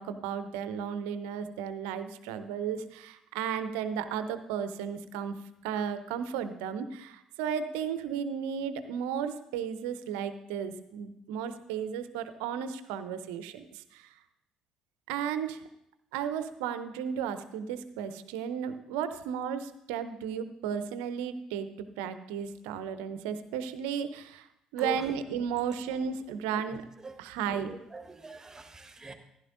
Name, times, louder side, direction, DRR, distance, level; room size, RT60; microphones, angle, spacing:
voice 1, 0.0-5.4 5.6-14.1 15.1-15.6 16.1-24.5 24.7-26.8 27.2-27.7, right 8 dB, 70° right, 11 dB, 0.6 m, -34 dB
voice 2, 27.5-29.1, right 2 dB, 20° right, 6 dB, 1.4 m, -41 dB
15.0 x 11.0 x 2.6 m, 0.80 s
figure-of-eight pair, 50°, 3 cm